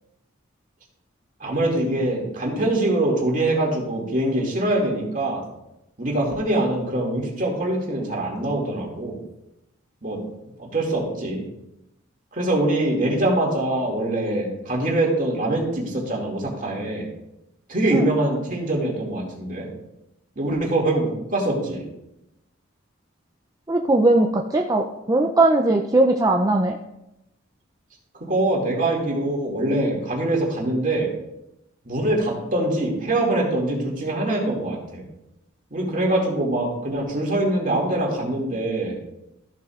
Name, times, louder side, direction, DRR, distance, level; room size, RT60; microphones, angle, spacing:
voice 1, 1.4-5.4 6.0-9.2 10.0-10.2 10.6-11.4 12.3-17.1 17.7-19.7 20.4-21.8 28.2-31.1 31.8-35.0 35.7-39.0, right 1 dB, 40° right, -2 dB, 2.3 m, -23 dB
voice 2, 23.7-26.8, right 2 dB, 15° right, 2 dB, 0.4 m, -19 dB
14.5 x 7.3 x 2.4 m, 0.89 s
head